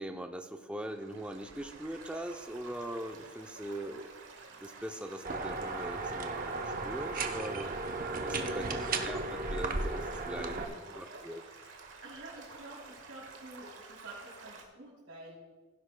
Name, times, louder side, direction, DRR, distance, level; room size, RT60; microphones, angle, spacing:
voice 1, 0.0-4.0 4.5-7.7 8.2-9.2 9.5-11.4, right 1 dB, 5° right, 5 dB, 0.5 m, -41 dB
Stream / Gurgling / Trickle dribble, 0.8-14.6, right 3 dB, 60° right, 1.5 m, -51 dB
sound 1, 5.2-10.6, right 3 dB, 40° right, 0.7 m, -35 dB
voice 2, 8.4-9.0 10.2-11.2 12.0-15.4, right 2 dB, 85° right, -9 dB, 3.2 m, -49 dB
16.5 x 10.5 x 2.2 m, 1.4 s
head